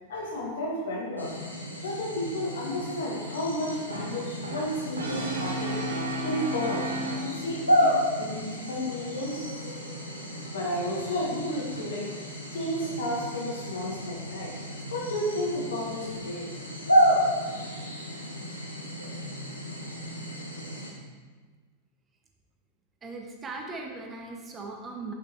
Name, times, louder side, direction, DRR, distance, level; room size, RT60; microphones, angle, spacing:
voice 1, 0.1-1.3 1.8-5.7 6.2-6.9 7.2-9.5 10.4-12.0 12.5-14.5 14.9-16.5 17.5-18.0, left 1 dB, 60° left, -2 dB, 1.5 m, -32 dB
sound 1, 1.2-20.9, equal, 85° left, 0.9 m, -31 dB
Brass instrument, 3.9-7.7, right 1 dB, 70° right, 0.7 m, -33 dB
voice 2, 23.0-25.1, right 3 dB, 20° right, 1 dB, 0.8 m, -38 dB
6.2 x 6.0 x 3.0 m, 1.4 s
figure-of-eight pair, 90°, 0 cm